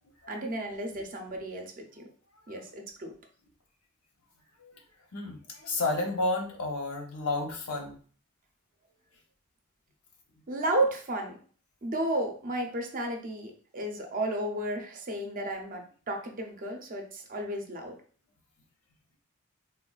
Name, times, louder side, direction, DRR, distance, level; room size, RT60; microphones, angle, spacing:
voice 1, 0.3-2.1 2.5-3.1 10.5-11.4 11.8-17.9, right 1 dB, 40° right, 3 dB, 0.5 m, -33 dB
voice 2, 5.1-8.0, left 2 dB, 80° left, 2 dB, 0.8 m, -31 dB
3.5 x 2.3 x 2.3 m, 0.44 s
head